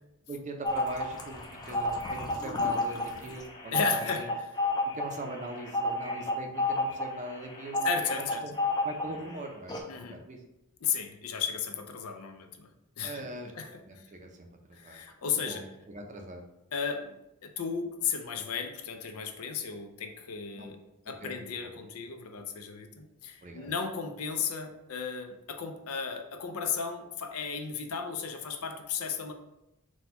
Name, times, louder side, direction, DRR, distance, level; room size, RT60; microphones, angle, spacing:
voice 1, 0.3-1.4 1.7-4.3 4.9-7.9 8.2-8.5 8.8-10.4 13.0-13.5 13.9-15.0 15.4-16.4 20.5-20.7 21.2-21.4 23.4-23.7, right 2 dB, 35° right, 3 dB, 0.5 m, -41 dB
sound 1, 0.6-9.3 9.7-9.8, left 2 dB, 20° left, 0.5 m, -31 dB
voice 2, 3.7-4.5 7.8-8.5 9.9-10.2 10.8-12.7 13.0-14.1 14.7-15.6 16.7-17.2 17.4-20.8 21.1-29.3, left 6 dB, 80° left, 6 dB, 0.5 m, -34 dB
4.2 x 2.3 x 4.3 m, 0.90 s
head